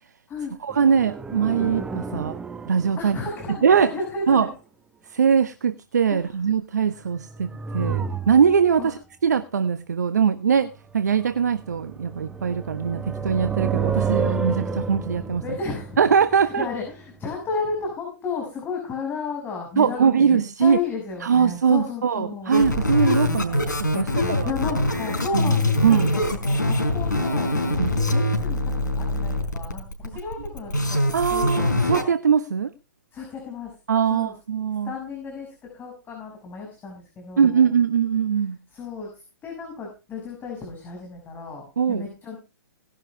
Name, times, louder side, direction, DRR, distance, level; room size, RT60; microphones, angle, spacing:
voice 1, 0.6-2.4 2.7-3.2 3.6-3.9 4.3-4.5 5.1-10.7 10.9-15.6 16.0-16.7 19.8-20.8 21.2-24.5 25.3-25.6 25.8-26.1 27.8-27.9 31.1-32.7 33.9-34.9 37.4-38.6 41.8-42.1, right 7 dB, 70° right, 1.1 m, -21 dB
sound 1, 0.7-3.8 7.1-8.9 11.2-17.3 17.5-17.6, right 5 dB, 10° right, 0.9 m, -30 dB
voice 2, 3.0-4.5 6.1-6.3 8.8-8.9 15.4-16.0 16.4-22.6 24.0-31.0 31.3-31.7 33.1-33.7 34.1-34.3 34.8-37.7 38.7-39.1 39.4-42.4, left 4 dB, 20° left, 6.1 m, -33 dB
sound 2, 22.5-32.0, left 1 dB, 85° left, 4.5 m, -23 dB
19.0 x 11.5 x 3.4 m
figure-of-eight pair, 120°, 10 cm